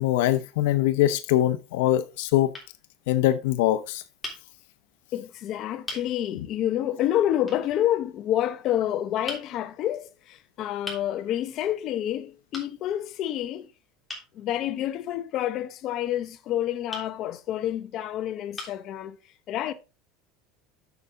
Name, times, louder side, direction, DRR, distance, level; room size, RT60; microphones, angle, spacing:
voice 1, 0.0-2.5 3.1-4.0, left 13 dB, 85° left, 0.7 m, -23 dB
sound 1, 1.1-1.4 2.1-2.2 2.5-2.7 4.2-4.4 5.3-5.4 5.8-6.1 7.5-7.7 9.3-9.5 10.8-11.1 12.5-12.7 14.1-14.3 16.9-17.1 17.9-18.0 18.5-18.8, left 2 dB, 10° left, 3.3 m, -38 dB
voice 2, 5.1-13.7 14.3-19.2 19.5-19.7, left 12 dB, 50° left, 0.8 m, -28 dB
8.0 x 7.0 x 3.7 m
supercardioid pair, 135°, 0 cm